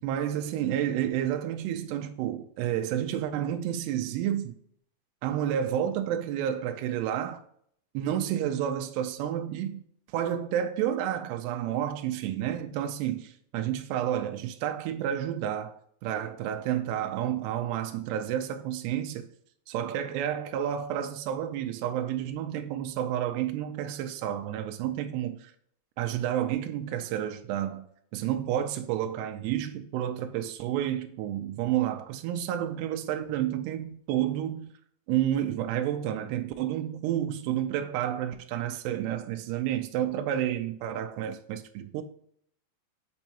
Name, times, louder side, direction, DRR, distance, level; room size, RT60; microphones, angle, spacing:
voice 1, 0.0-4.5 5.2-7.4 7.9-9.8 10.1-19.3 19.7-25.5 26.0-27.9 28.1-34.7 35.1-42.0, right 10 dB, 85° right, 2.5 m, -30 dB
7.1 x 5.4 x 2.8 m
omnidirectional pair, 5.1 m